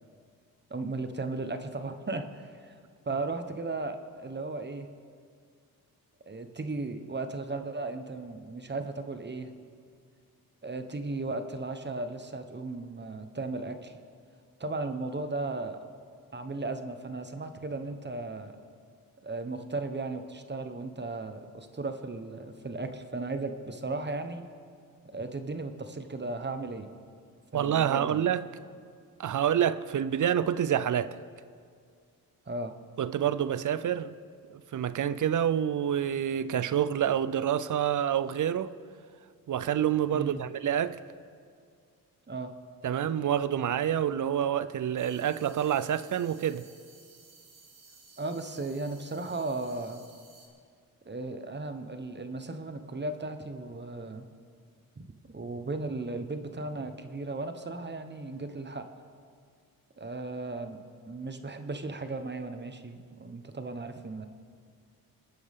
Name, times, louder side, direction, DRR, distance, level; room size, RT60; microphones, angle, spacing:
voice 1, 0.7-2.8 3.0-4.9 6.3-9.5 10.6-13.9 14.6-15.9 16.3-18.6 19.2-24.4 25.1-26.9 27.5-28.2 32.5-32.8 40.1-40.4 42.3-42.5 48.2-50.0 51.1-54.3 55.0-55.1 55.3-58.9 60.0-60.8 61.1-64.3, right 3 dB, 30° right, 1.2 m, -36 dB
voice 2, 27.5-28.4 29.2-31.2 33.0-34.1 34.5-38.7 39.5-41.0 42.8-46.7, right 9 dB, 55° right, 0.6 m, -27 dB
sound 1, 45.0-50.5, right 4 dB, 75° right, 3.1 m, -56 dB
26.5 x 9.5 x 3.7 m
cardioid pair, 65°, 37 cm